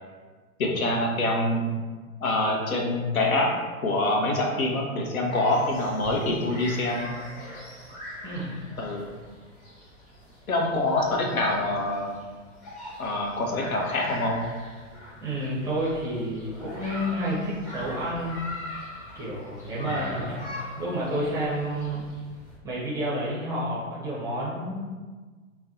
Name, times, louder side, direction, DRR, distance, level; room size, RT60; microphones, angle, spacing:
voice 1, 0.6-1.7 2.2-3.5 3.8-7.1 8.8-9.1 10.5-12.1 13.0-14.4 19.7-20.1, left 2 dB, 80° left, 1 dB, 0.8 m, -25 dB
sound 1, 5.3-22.6, left 1 dB, 20° left, 0.8 m, -42 dB
voice 2, 8.2-8.5 15.2-18.4 19.1-22.2 22.6-24.9, equal, 10° right, -7 dB, 0.5 m, -30 dB
2.5 x 2.2 x 3.7 m, 1.4 s
figure-of-eight pair, 110°, 42 cm